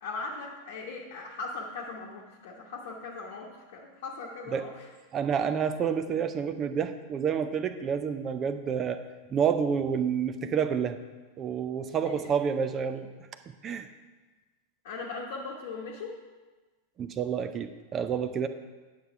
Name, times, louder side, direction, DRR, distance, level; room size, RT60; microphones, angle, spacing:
voice 1, 0.0-4.8 12.0-12.2 14.8-16.1, left 3 dB, 55° left, -3 dB, 1.0 m, -39 dB
voice 2, 5.1-9.0 9.3-11.0 11.4-13.1 13.6-13.9 17.0-18.5, right 7 dB, 25° right, 10 dB, 0.5 m, -29 dB
9.5 x 6.6 x 4.6 m, 1.3 s
figure-of-eight pair, 90°, 0 cm